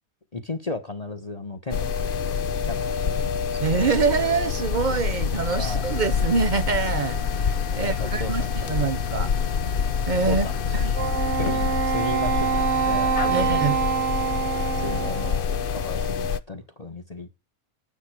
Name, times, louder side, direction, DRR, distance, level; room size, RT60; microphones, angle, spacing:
voice 1, 0.3-3.6 5.6-5.9 7.7-8.5 8.8-8.9 10.2-11.0 11.3-13.9 14.8-17.4, left 2 dB, 30° left, 1.3 m, -35 dB
sound 1, 1.7-16.4, left 7 dB, 50° left, 0.8 m, -27 dB
voice 2, 3.6-9.3 10.1-10.5 10.7-10.9 13.3-13.8, right 5 dB, 40° right, 0.7 m, -25 dB
sound 2, 4.7-11.9, left 5 dB, 65° left, 1.4 m, -30 dB
Wind instrument woodwind instrument, 10.9-15.5, right 8 dB, 60° right, 1.1 m, -25 dB
9.9 x 9.4 x 4.9 m
omnidirectional pair, 1.4 m